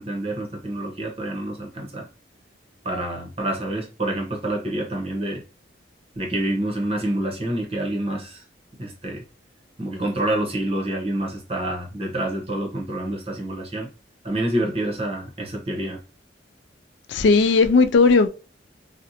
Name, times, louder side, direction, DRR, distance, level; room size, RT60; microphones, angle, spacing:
voice 1, 0.0-2.1 2.8-5.4 6.1-8.4 8.8-9.2 9.8-13.9 14.2-16.0, right 1 dB, 30° right, 0.8 m, -27 dB
voice 2, 17.1-18.3, left 4 dB, 75° left, 0.3 m, -16 dB
2.6 x 2.1 x 2.7 m
head